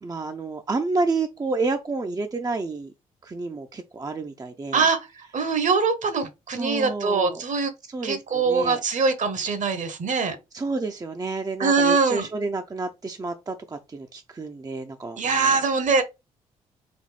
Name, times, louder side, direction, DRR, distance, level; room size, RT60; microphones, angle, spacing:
voice 1, 0.0-2.9 3.2-4.9 6.5-7.4 7.9-8.8 10.5-15.6, right 3 dB, 20° right, 0.6 m, -30 dB
voice 2, 5.3-7.7 8.0-10.4 11.6-12.3 15.2-16.0, right 4 dB, 45° right, 1.0 m, -22 dB
4.1 x 2.6 x 3.2 m
hypercardioid pair, 45°, 17 cm